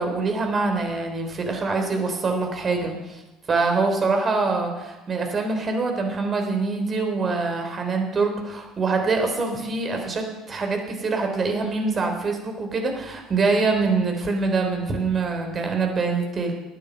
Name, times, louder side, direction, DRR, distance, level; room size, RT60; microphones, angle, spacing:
voice 1, 0.0-3.2 3.5-16.5, right 3 dB, 35° right, 4 dB, 3.5 m, -24 dB
13.0 x 9.3 x 7.7 m, 1.1 s
figure-of-eight pair, 60°, 0 cm